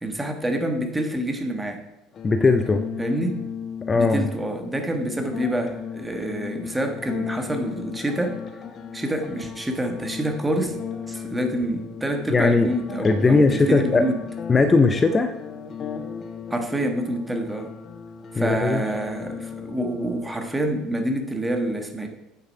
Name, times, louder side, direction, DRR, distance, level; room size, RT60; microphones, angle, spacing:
voice 1, 0.0-1.8 3.0-3.5 3.9-8.4 8.9-10.8 11.1-14.2 16.5-17.7 18.3-22.1, right 1 dB, 10° right, 4 dB, 1.4 m, -27 dB
sound 1, 2.1-21.1, left 7 dB, 40° left, 1.0 m, -36 dB
voice 2, 2.2-2.8 3.9-4.3 12.3-12.7 13.0-14.1 14.5-15.4 18.4-18.8, left 3 dB, 25° left, 10 dB, 0.6 m, -19 dB
8.7 x 6.9 x 4.8 m, 0.95 s
figure-of-eight pair, 65°, 0 cm